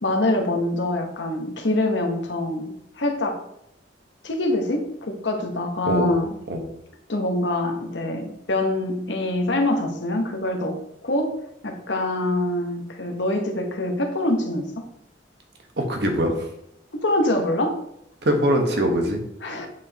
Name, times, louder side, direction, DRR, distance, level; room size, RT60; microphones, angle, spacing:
voice 1, 0.0-3.4 4.2-6.4 7.1-14.9 16.9-17.8 19.4-19.7, left 1 dB, 75° left, 3 dB, 1.1 m, -25 dB
voice 2, 5.9-6.2 6.5-6.6 15.8-16.5 18.2-19.2, equal, 65° right, 3 dB, 1.3 m, -22 dB
8.7 x 4.8 x 2.9 m, 0.77 s
head